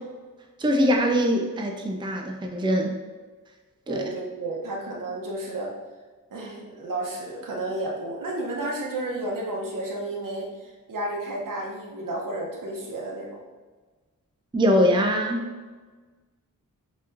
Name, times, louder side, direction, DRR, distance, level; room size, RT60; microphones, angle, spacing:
voice 1, 0.6-3.0 3.9-4.0 14.5-15.5, equal, 15° right, 2 dB, 0.4 m, -22 dB
voice 2, 3.9-5.7 6.3-13.4, right 2 dB, 70° right, -2 dB, 0.8 m, -32 dB
4.1 x 2.9 x 2.5 m, 1.4 s
cardioid pair, 55°, 34 cm